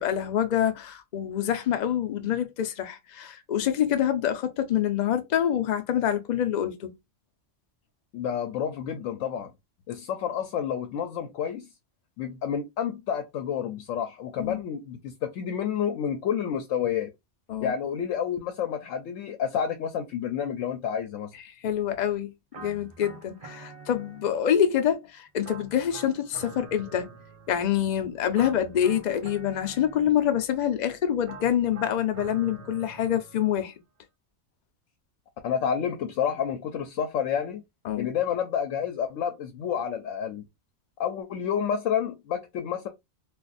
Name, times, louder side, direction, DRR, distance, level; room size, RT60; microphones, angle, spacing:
voice 1, 0.0-6.9 14.4-14.6 17.5-17.7 21.6-27.1 27.5-33.7 37.8-38.1, left 10 dB, 50° left, 0.5 m, -26 dB
voice 2, 8.1-9.5 9.9-11.7 12.2-17.1 17.6-21.3 35.4-37.6 38.0-40.4 41.0-42.9, left 8 dB, 85° left, 0.9 m, -29 dB
sound 1, 22.5-24.6 25.4-27.8 28.3-30.4 31.2-33.6, right 4 dB, 35° right, 0.7 m, -46 dB
2.5 x 2.4 x 3.9 m
omnidirectional pair, 1.3 m